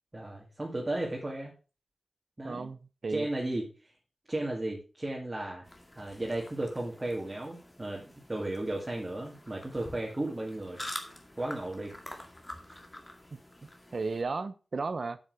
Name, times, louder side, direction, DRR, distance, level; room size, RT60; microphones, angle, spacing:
voice 1, 0.1-1.5 2.4-2.7 3.1-3.9 4.3-5.6 6.0-10.8 11.4-11.9 12.7-12.8, right 1 dB, 25° right, -2 dB, 2.3 m, -35 dB
voice 2, 2.4-3.3 13.9-15.2, right 4 dB, 55° right, 13 dB, 0.8 m, -34 dB
sound 1, 5.6-14.2, left 1 dB, 20° left, 2.1 m, -47 dB
8.7 x 7.9 x 4.8 m, 0.35 s
wide cardioid pair, 95°, 0 cm